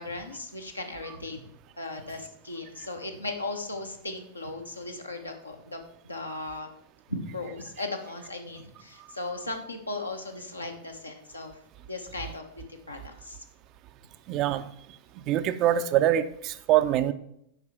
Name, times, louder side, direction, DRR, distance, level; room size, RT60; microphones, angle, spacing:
voice 1, 0.0-1.4 1.8-6.7 7.1-11.6 11.9-13.4, left 2 dB, 85° left, 3 dB, 1.1 m, -37 dB
voice 2, 14.3-14.7 15.3-17.1, right 12 dB, 40° right, 11 dB, 0.5 m, -24 dB
7.9 x 5.4 x 4.5 m, 0.73 s
figure-of-eight pair, 90°, 0 cm